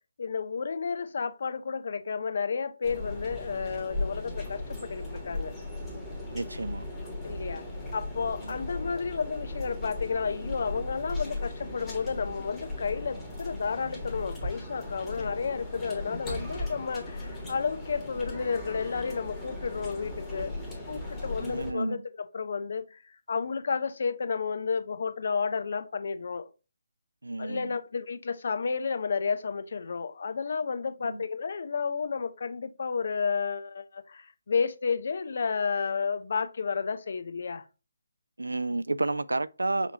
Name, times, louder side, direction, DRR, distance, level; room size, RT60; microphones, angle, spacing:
voice 1, 0.2-5.6 7.2-7.6 7.9-20.5 20.9-22.8 23.3-26.5 27.4-37.6, left 5 dB, 55° left, 0.5 m, -31 dB
sound 1, 2.8-21.7, left 2 dB, 10° left, 1.3 m, -37 dB
voice 2, 6.3-6.8 7.5-7.6 8.4-8.5 21.4-22.0 27.2-27.7 31.1-31.3 38.4-39.9, right 2 dB, 80° right, 0.3 m, -31 dB
5.8 x 2.8 x 2.8 m
figure-of-eight pair, 150°, 0 cm